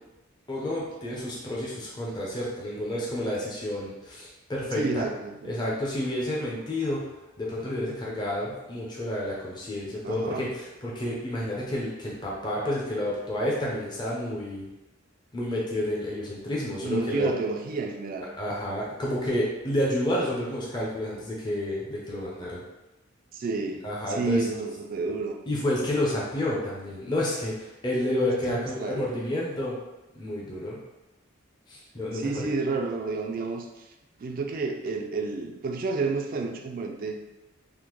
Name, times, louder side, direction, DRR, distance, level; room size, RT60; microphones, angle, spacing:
voice 1, 0.5-5.1 5.4-7.0 7.4-14.7 15.3-17.3 18.4-22.6 23.8-24.4 25.5-29.7 30.1-30.8 31.7-32.3, left 1 dB, 20° left, -5 dB, 0.6 m, -30 dB
voice 2, 4.7-5.6 10.0-10.5 16.8-18.3 23.3-25.4 28.4-29.1 32.1-33.8 34.2-37.2, right 3 dB, 45° right, 3 dB, 0.3 m, -30 dB
3.5 x 2.1 x 3.0 m, 0.98 s
head